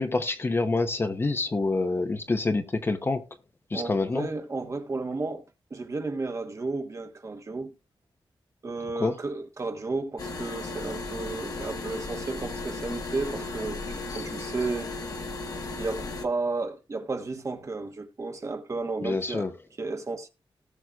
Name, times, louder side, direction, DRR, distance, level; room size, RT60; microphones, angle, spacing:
voice 1, 0.0-3.2 3.7-4.3 9.0-9.1 19.0-19.5, left 3 dB, 25° left, 0.8 m, -26 dB
voice 2, 3.7-5.4 5.7-7.7 8.6-13.8 14.1-14.9 15.8-19.5 19.8-20.3, right 3 dB, 35° right, 1.2 m, -33 dB
sound 1, 10.2-16.2, left 3 dB, 45° left, 1.2 m, -35 dB
18.5 x 6.2 x 2.4 m
wide cardioid pair, 175°, 9 cm